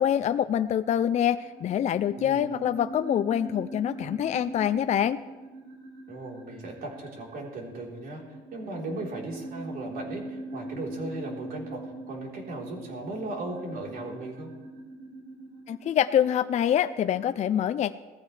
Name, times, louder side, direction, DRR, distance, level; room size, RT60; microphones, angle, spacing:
voice 1, 0.0-5.2 15.7-17.9, left 10 dB, 45° left, 11 dB, 0.4 m, -25 dB
sound 1, 0.9-17.2, right 2 dB, 35° right, 5.5 m, -42 dB
voice 2, 2.2-2.5 6.1-14.5, right 2 dB, 60° right, -1 dB, 3.8 m, -37 dB
19.0 x 14.5 x 3.3 m, 1.2 s
cardioid pair, 110°, 17 cm